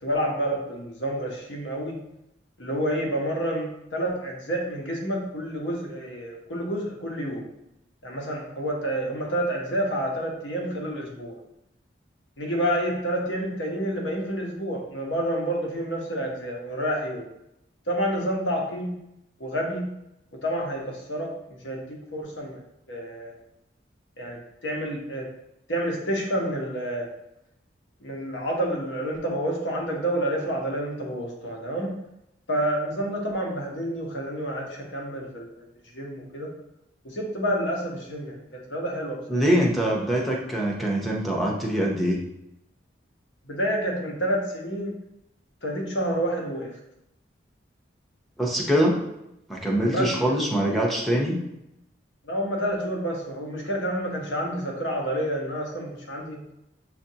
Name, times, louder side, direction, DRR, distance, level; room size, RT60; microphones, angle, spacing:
voice 1, 0.0-2.0 2.6-7.5 8.0-11.4 12.4-17.3 17.9-18.9 19.4-19.9 20.3-22.6 22.9-23.3 24.2-25.3 25.7-27.1 28.0-31.9 32.5-35.7 35.9-36.5 37.0-39.4 43.4-45.0 45.6-46.7 49.9-50.4 52.2-56.4, equal, 75° left, 0 dB, 1.1 m, -29 dB
voice 2, 39.3-42.3 48.4-49.0 49.5-51.4, equal, ahead, -2 dB, 0.7 m, -23 dB
7.2 x 2.5 x 2.8 m, 0.84 s
head